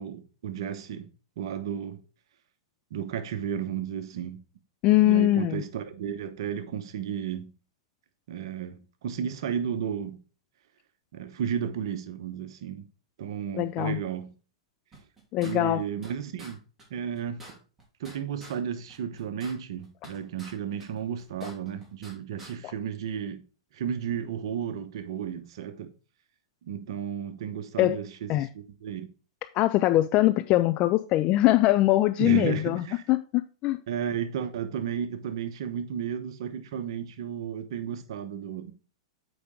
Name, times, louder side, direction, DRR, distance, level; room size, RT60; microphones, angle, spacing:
voice 1, 0.0-2.0 2.9-4.4 5.0-7.5 8.3-10.2 11.1-12.8 13.2-14.3 15.4-16.6 16.9-17.6 18.0-23.4 23.7-25.9 26.6-29.1 32.2-33.0 33.9-38.7, right 8 dB, 65° right, 0.9 m, -33 dB
voice 2, 4.8-5.6 13.6-14.0 15.3-15.8 27.8-28.0 28.3-28.5 29.5-33.8, left 16 dB, 40° left, 0.4 m, -22 dB
sound 1, 14.9-16.1 16.4-16.5 16.8-16.9 17.1-18.6 18.9-20.5 20.8-22.1 22.4-22.5, right 1 dB, 15° right, 3.3 m, -48 dB
8.1 x 5.0 x 3.6 m
hypercardioid pair, 110°, 3 cm